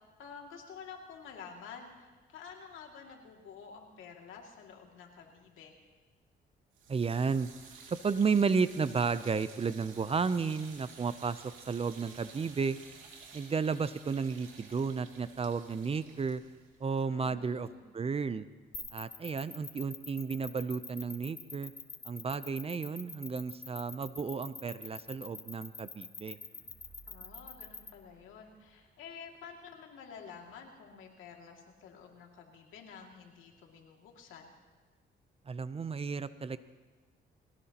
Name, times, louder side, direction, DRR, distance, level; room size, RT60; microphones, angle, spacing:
voice 1, 0.2-5.8 17.1-17.8 27.1-34.5, left 6 dB, 85° left, 1 dB, 2.4 m, -50 dB
sound 1, 6.7-17.8, right 5 dB, 90° right, 2.4 m, -53 dB
voice 2, 6.9-7.5 8.0-12.8 13.3-16.4 16.8-17.7 17.9-18.5 18.9-21.7 22.1-26.4 35.5-36.6, right 5 dB, 30° right, 14 dB, 0.6 m, -32 dB
sound 2, 18.7-27.9, left 3 dB, 40° left, 2.0 m, -44 dB
sound 3, 26.4-29.2 29.5-29.6, right 4 dB, 55° right, 2.8 m, -60 dB
21.5 x 18.0 x 2.9 m, 1.3 s
cardioid pair, 90°, 20 cm